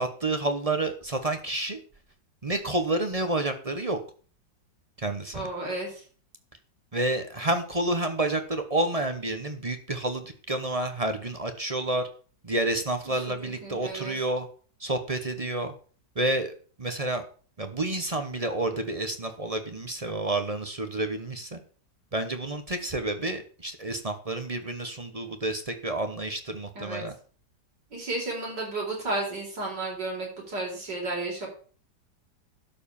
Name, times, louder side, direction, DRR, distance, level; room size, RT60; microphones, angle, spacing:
voice 1, 0.0-1.8 2.4-4.0 5.0-5.5 6.9-12.1 12.4-14.5 14.8-15.7 16.1-16.5 16.8-17.2 17.6-21.6 22.1-27.1, right 2 dB, 25° right, 7 dB, 0.8 m, -29 dB
voice 2, 5.3-6.0 13.3-14.1 26.7-27.0 27.9-31.5, right 2 dB, 65° right, -2 dB, 5.0 m, -33 dB
12.0 x 4.9 x 7.0 m, 0.42 s
omnidirectional pair, 2.0 m